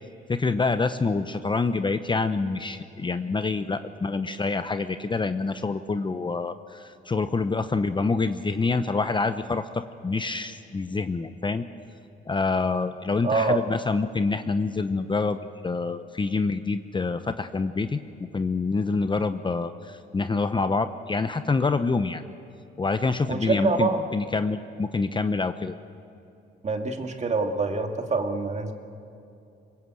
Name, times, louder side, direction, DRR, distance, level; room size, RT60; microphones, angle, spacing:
voice 1, 0.3-11.7 12.3-18.0 18.3-22.2 22.8-25.7, left 4 dB, 25° left, 10 dB, 0.8 m, -26 dB
voice 2, 13.2-13.6 23.3-24.0 26.6-28.7, right 3 dB, 35° right, 4 dB, 2.3 m, -25 dB
24.0 x 21.0 x 7.9 m, 2.7 s
cardioid pair, 90°, 20 cm